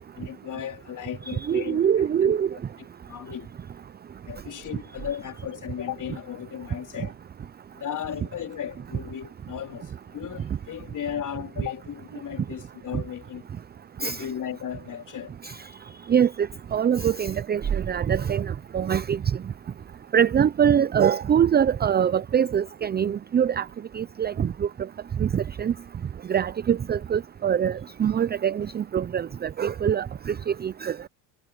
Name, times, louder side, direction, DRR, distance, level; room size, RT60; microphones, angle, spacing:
voice 1, 0.1-2.3 3.1-3.5 4.3-7.1 7.7-13.5 14.0-15.4, left 9 dB, 40° left, 3.9 m, -35 dB
voice 2, 1.3-2.5 14.0-14.2 15.4-15.5 16.1-19.2 20.1-23.7 23.9-24.7 25.2-25.7 26.3-30.9, right 8 dB, 20° right, 0.6 m, -23 dB
supercardioid pair, 95°, 49 cm